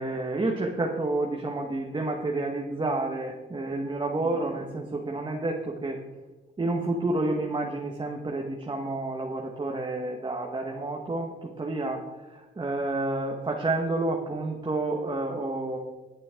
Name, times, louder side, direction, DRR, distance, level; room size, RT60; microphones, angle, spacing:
voice 1, 0.0-6.0 6.6-15.8, right 2 dB, 25° right, 0 dB, 1.7 m, -30 dB
20.5 x 7.5 x 3.9 m, 1.1 s
cardioid pair, 90°, 20 cm